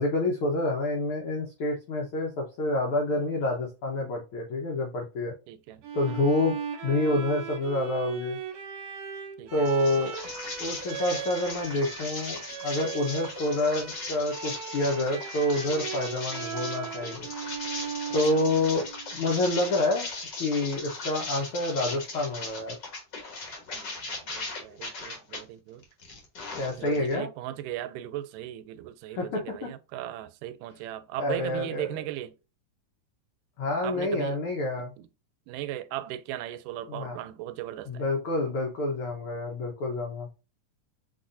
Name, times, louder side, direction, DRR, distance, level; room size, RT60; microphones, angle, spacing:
voice 1, 0.0-5.3 5.9-6.6 6.8-8.4 9.5-10.1 10.6-17.3 18.1-18.8 19.1-20.1 20.4-22.8 26.6-27.3 29.1-29.7 31.2-31.9 33.6-34.9 36.9-37.2 37.9-40.3, left 2 dB, 80° left, 1.2 m, -28 dB
voice 2, 5.5-6.3 9.4-9.7 18.3-18.4 23.7-25.9 26.8-32.4 33.8-34.4 34.8-35.1 35.5-38.0, right 13 dB, 85° right, 2.1 m, -38 dB
Bowed string instrument, 5.8-19.3, right 8 dB, 65° right, 1.6 m, -38 dB
sound 1, 9.6-25.4 25.8-27.1, left 3 dB, 55° left, 1.3 m, -38 dB
4.2 x 4.1 x 2.5 m
omnidirectional pair, 3.7 m